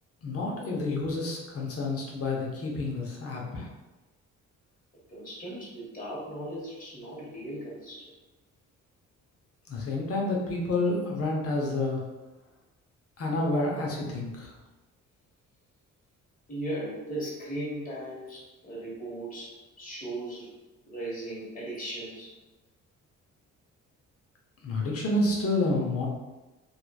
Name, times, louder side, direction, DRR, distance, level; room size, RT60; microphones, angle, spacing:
voice 1, 0.2-3.7 9.7-12.0 13.2-14.5 24.6-26.1, left 2 dB, 50° left, -2 dB, 0.8 m, -29 dB
voice 2, 5.1-8.1 16.5-20.5 20.9-22.3, right 1 dB, 25° left, -7 dB, 1.4 m, -37 dB
2.9 x 2.4 x 2.2 m, 1.1 s
cardioid pair, 90°, 30 cm